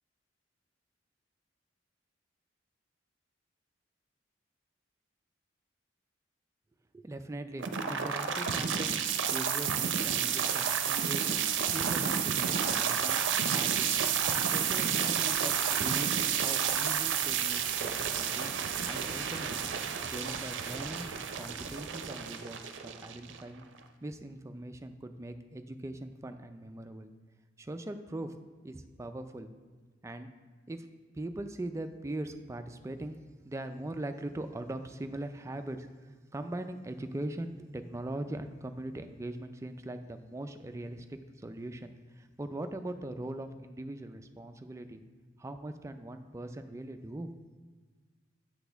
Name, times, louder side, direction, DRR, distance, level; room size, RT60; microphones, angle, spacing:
voice 1, 6.9-11.3 11.7-13.2 13.5-14.1 14.4-18.5 18.9-19.6 20.0-21.1 21.3-23.6 24.0-27.1 27.6-28.3 28.6-29.5 30.0-30.3 30.7-30.9 31.1-33.2 33.4-45.0 45.4-47.3, right 1 dB, 15° right, 8 dB, 0.3 m, -41 dB
sound 1, 7.6-23.6, right 8 dB, 75° right, 0.5 m, -30 dB
7.9 x 6.2 x 3.4 m, 1.4 s
head